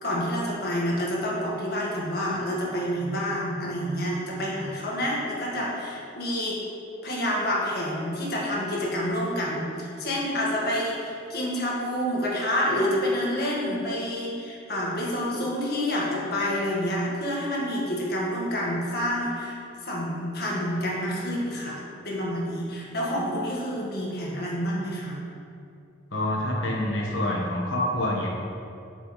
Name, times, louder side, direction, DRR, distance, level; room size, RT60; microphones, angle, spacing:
voice 1, 0.0-6.6 7.0-21.8 22.0-25.2, equal, 55° left, -4 dB, 1.7 m, -28 dB
voice 2, 26.1-28.3, left 1 dB, 85° left, -3 dB, 1.3 m, -26 dB
7.6 x 7.5 x 3.2 m, 2.5 s
head